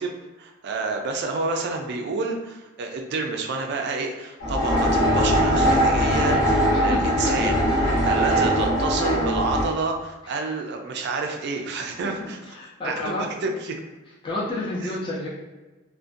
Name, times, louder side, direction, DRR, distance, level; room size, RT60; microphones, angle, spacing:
voice 1, 0.0-7.6 8.0-12.4 12.8-13.8 14.8-14.9, right 3 dB, 55° right, 2 dB, 0.4 m, -29 dB
sound 1, 4.4-9.6, equal, 75° left, 0.9 m, -21 dB
voice 2, 6.7-8.2 10.2-10.4 12.0-13.2 14.2-15.3, left 2 dB, 25° left, -6 dB, 0.4 m, -31 dB
2.4 x 2.1 x 2.5 m, 1.2 s
head